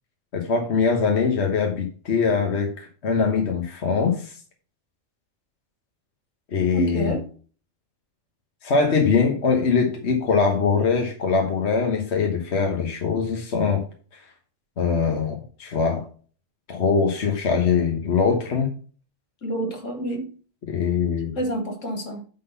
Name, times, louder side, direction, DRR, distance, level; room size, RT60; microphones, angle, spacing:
voice 1, 0.3-2.7 3.0-4.3 6.5-7.2 8.6-13.8 14.8-16.0 16.7-18.7 20.6-21.3, left 5 dB, 60° left, 1.4 m, -22 dB
voice 2, 6.7-7.2 19.4-20.3 21.4-22.2, right 1 dB, 75° left, 2.2 m, -28 dB
9.2 x 3.9 x 5.6 m
omnidirectional pair, 1.3 m